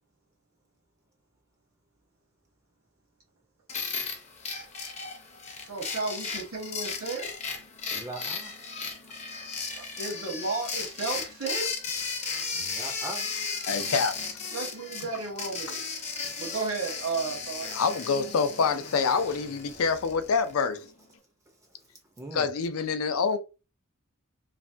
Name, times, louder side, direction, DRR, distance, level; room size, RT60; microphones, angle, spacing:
sound 1, 3.7-20.7, left 5 dB, 30° left, 0.6 m, -35 dB
voice 1, 5.6-7.3 9.7-11.7 14.5-15.9 16.4-17.7, right 4 dB, 75° right, 1.4 m, -33 dB
voice 2, 7.9-8.5 12.5-13.7 22.2-22.5, right 2 dB, 15° right, 0.5 m, -41 dB
voice 3, 13.6-14.5 17.7-20.9 22.3-23.4, left 5 dB, 70° left, 0.4 m, -26 dB
3.2 x 2.1 x 2.6 m
head